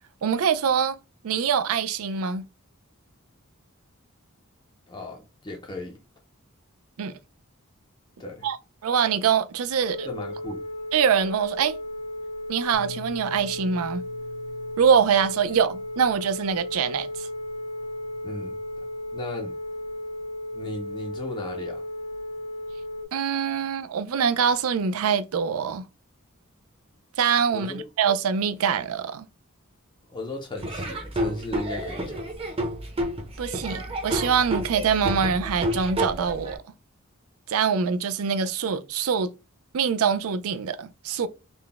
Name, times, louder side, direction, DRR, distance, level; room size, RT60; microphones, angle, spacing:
voice 1, 0.2-1.0 1.2-2.5 7.0-7.1 8.4-8.6 8.8-10.1 10.9-11.8 12.5-14.0 14.8-17.3 23.1-25.8 27.2-29.3 33.4-36.6 37.5-39.3 39.7-41.3, right 7 dB, 75° right, 0.4 m, -24 dB
voice 2, 4.9-6.0 8.2-8.5 10.0-10.6 18.0-18.6 19.1-19.5 20.5-21.8 27.5-27.9 30.1-32.4, left 2 dB, 20° left, 0.5 m, -36 dB
Telephone, 9.8-23.0, left 1 dB, 90° left, 1.5 m, -35 dB
Bass guitar, 12.7-19.0, left 6 dB, 65° left, 0.6 m, -48 dB
Laughter / Drum, 30.6-36.6, right 1 dB, 25° right, 0.7 m, -30 dB
3.9 x 2.1 x 3.4 m
head